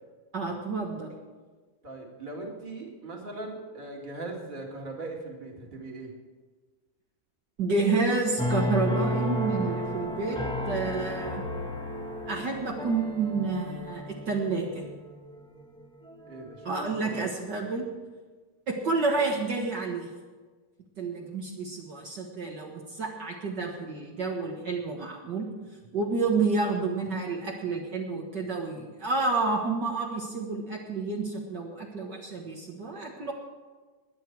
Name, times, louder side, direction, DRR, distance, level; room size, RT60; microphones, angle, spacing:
voice 1, 0.3-1.1 7.6-10.4 10.7-11.4 12.3-14.8 16.7-17.8 18.7-20.1 21.0-25.5 25.9-33.3, right 3 dB, 55° right, -1 dB, 2.0 m, -29 dB
voice 2, 1.8-6.1 16.3-17.3, right 2 dB, 20° right, 0 dB, 2.2 m, -39 dB
sound 1, 8.4-15.6 16.1-16.7, equal, 5° left, 1.1 m, -32 dB
21.5 x 8.9 x 4.7 m, 1.4 s
omnidirectional pair, 2.4 m